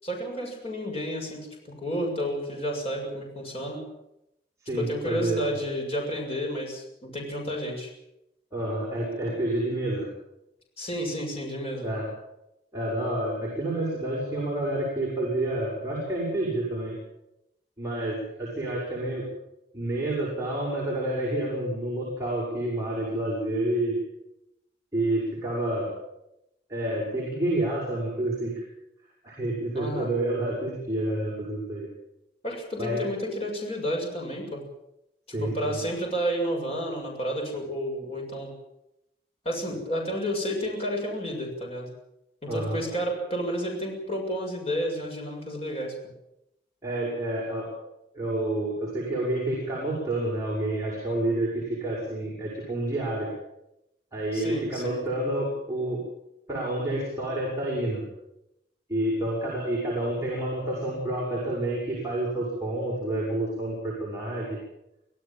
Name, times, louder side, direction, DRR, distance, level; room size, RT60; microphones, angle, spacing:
voice 1, 0.0-1.5 1.8-3.8 4.8-7.9 10.8-11.9 29.7-30.1 32.4-34.6 35.3-38.5 39.5-41.9 42.4-45.9 54.3-55.0, equal, 35° left, 1 dB, 6.9 m, -31 dB
voice 2, 4.6-5.4 8.5-10.1 11.8-12.1 12.7-17.0 17.8-19.2 19.7-24.0 24.9-25.9 26.7-28.7 29.2-31.9 32.8-33.0 35.3-35.8 42.5-42.8 46.8-47.7 48.1-53.3 54.1-56.0 56.5-58.0 58.9-64.6, right 1 dB, 15° right, -5 dB, 6.9 m, -29 dB
25.5 x 16.0 x 7.6 m, 0.86 s
head